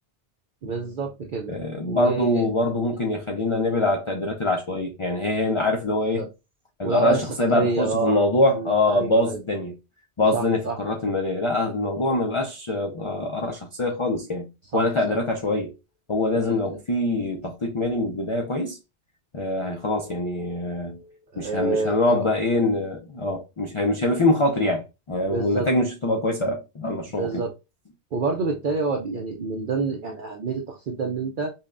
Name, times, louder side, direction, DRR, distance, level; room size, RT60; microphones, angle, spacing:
voice 1, 0.6-1.6 1.9-2.5 6.1-6.3 6.8-7.2 7.5-8.2 8.5-9.4 10.3-10.8 14.7-15.2 16.3-16.6 21.3-22.3 25.3-25.7 27.2-27.5 28.1-31.5, right 4 dB, 55° right, 0.7 m, -27 dB
voice 2, 1.5-6.3 6.8-9.7 10.2-14.5 14.7-15.7 16.1-18.8 19.3-21.1 21.4-27.4, left 2 dB, 45° left, 0.4 m, -24 dB
5.5 x 2.2 x 2.4 m
omnidirectional pair, 1.2 m